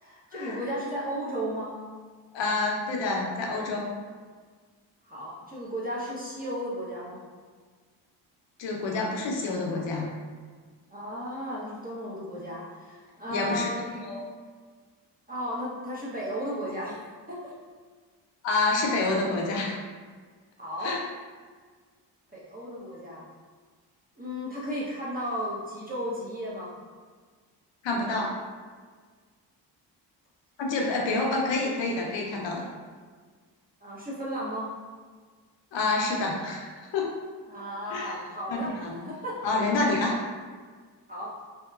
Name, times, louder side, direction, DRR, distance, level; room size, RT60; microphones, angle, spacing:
voice 1, 0.0-1.7 5.0-7.2 10.9-14.1 15.3-17.0 17.3-17.5 20.6-21.0 22.3-23.2 24.2-26.7 33.8-34.7 37.5-39.4 41.1-41.3, equal, 20° right, -8 dB, 0.7 m, -34 dB
voice 2, 2.3-3.9 8.6-10.1 13.3-13.7 14.0-14.2 18.4-19.8 20.8-21.0 27.8-28.4 30.6-32.7 35.7-37.1 37.9-38.1 38.5-39.0 39.4-40.2, left 3 dB, 65° left, -1 dB, 0.7 m, -28 dB
2.8 x 2.1 x 2.3 m, 1.5 s
supercardioid pair, 60°, 47 cm